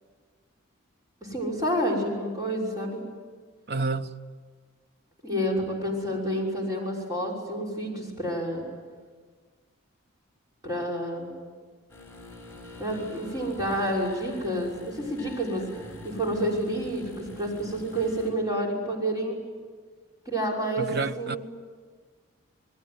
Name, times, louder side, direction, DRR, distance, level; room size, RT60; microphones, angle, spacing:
voice 1, 1.2-3.0 5.2-8.6 10.6-11.5 12.8-19.4 20.2-20.9 21.2-21.4, equal, 20° right, 6.0 m, -29 dB
voice 2, 3.7-4.2 20.8-21.4, right 3 dB, 50° right, 0.9 m, -29 dB
sound 1, 11.9-18.3, left 1 dB, 10° left, 7.3 m, -45 dB
28.5 x 20.0 x 9.7 m
head